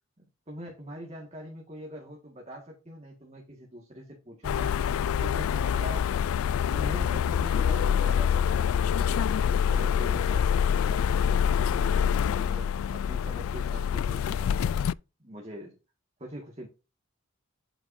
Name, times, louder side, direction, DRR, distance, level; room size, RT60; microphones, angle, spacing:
voice 1, 0.2-4.7 5.2-11.3 11.7-12.0 12.3-14.8 15.2-15.8 16.2-16.7, right 1 dB, 30° right, 0 dB, 1.8 m, -43 dB
sound 1, 4.4-14.9, left 8 dB, 80° left, 0.3 m, -26 dB
8.1 x 7.9 x 2.7 m, 0.29 s
head